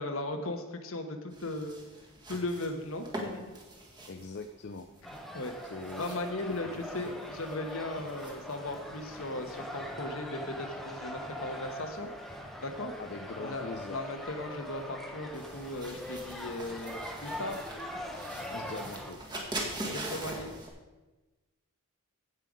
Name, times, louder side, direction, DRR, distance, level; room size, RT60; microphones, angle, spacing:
voice 1, 0.0-1.8 2.3-3.6 5.3-5.6 6.0-12.1 12.6-12.9 13.4-17.6 19.8-20.5, left 2 dB, 65° left, 6 dB, 1.3 m, -37 dB
sound 1, 1.3-20.7, right 1 dB, 20° right, 1.7 m, -45 dB
voice 2, 4.1-4.9 5.6-6.2 6.5-7.1 13.0-14.0 18.5-19.2, left 3 dB, 50° left, 6 dB, 0.5 m, -42 dB
sound 2, 5.0-19.1, equal, ahead, 0.9 m, -42 dB
15.5 x 5.7 x 5.2 m, 1.2 s
head